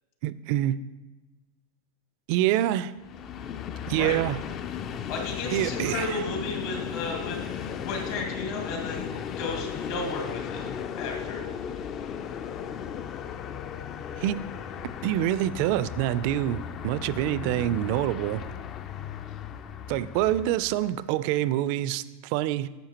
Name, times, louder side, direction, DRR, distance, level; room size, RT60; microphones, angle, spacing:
voice 1, 0.2-0.8 2.3-2.9 3.9-4.4 5.5-6.2 14.2-14.4 15.0-18.4 19.9-22.7, right 13 dB, 50° right, 16 dB, 0.3 m, -26 dB
Train, 3.0-21.1, left 8 dB, 30° left, 0.3 m, -36 dB
voice 2, 5.1-10.6 11.0-11.5, left 3 dB, 60° left, 0 dB, 2.3 m, -34 dB
10.5 x 7.1 x 2.9 m, 1.2 s
supercardioid pair, 140°, 0 cm